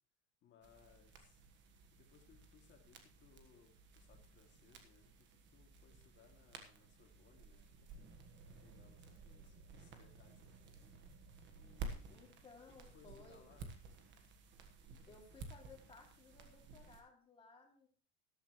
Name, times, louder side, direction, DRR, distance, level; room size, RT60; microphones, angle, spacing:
voice 1, 0.4-1.4 1.9-8.1 8.5-11.0 11.5-12.4 12.9-13.7, left 6 dB, 30° left, 2 dB, 2.6 m, -67 dB
sound 1, 0.6-17.0, right 4 dB, 30° right, 1.5 m, -54 dB
voice 2, 12.1-13.5 15.1-17.9, left 4 dB, 15° left, 0 dB, 2.6 m, -60 dB
13.5 x 12.5 x 3.1 m, 0.40 s
cardioid pair, 175°, 37 cm